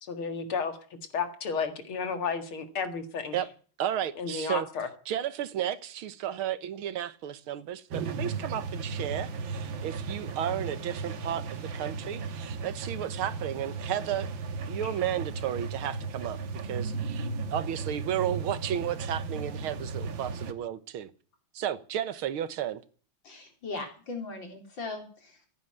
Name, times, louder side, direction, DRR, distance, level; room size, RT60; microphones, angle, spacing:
voice 1, 0.0-0.8 1.1-3.4 4.2-4.9, left 5 dB, 85° left, 2.7 m, -32 dB
voice 2, 3.8-4.7 5.1-14.3 14.6-16.4 16.6-21.1 21.5-22.8, right 10 dB, 85° right, 1.9 m, -33 dB
sound 1, 7.9-20.5, right 4 dB, 70° right, 2.0 m, -35 dB
voice 3, 23.2-25.5, left 3 dB, 65° left, 4.6 m, -39 dB
15.5 x 9.4 x 9.7 m
omnidirectional pair, 2.3 m